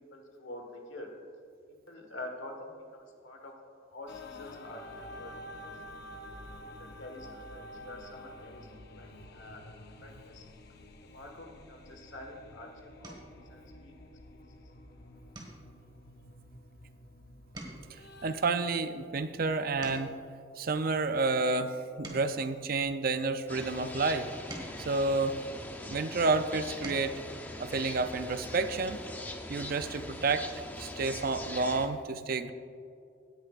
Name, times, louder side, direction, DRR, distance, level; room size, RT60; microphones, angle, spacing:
voice 1, 0.1-1.1 1.9-3.5 3.8-5.3 5.9-6.2 6.6-8.7 8.9-9.7 10.0-10.4 11.1-13.2 13.5-14.0 14.3-14.4, left 1 dB, 70° left, 2 dB, 1.4 m, -46 dB
sound 1, 4.1-18.3, left 1 dB, 55° left, 0.7 m, -49 dB
sound 2, 13.0-13.4 13.9-14.3 14.6-14.8 15.3-17.1 17.4-20.3 20.9-23.4 24.1-25.9 26.5-27.2 28.6-28.7 29.0-29.2, right 1 dB, 20° right, 1.6 m, -49 dB
voice 2, 18.2-20.1 20.6-24.3 24.8-25.4 25.8-27.1 27.6-29.0 29.5-30.5 30.8-32.5, right 3 dB, 45° right, 10 dB, 0.5 m, -30 dB
sound 3, 23.5-31.9, left 1 dB, 10° left, 0.6 m, -42 dB
17.0 x 9.9 x 2.5 m, 2.5 s
head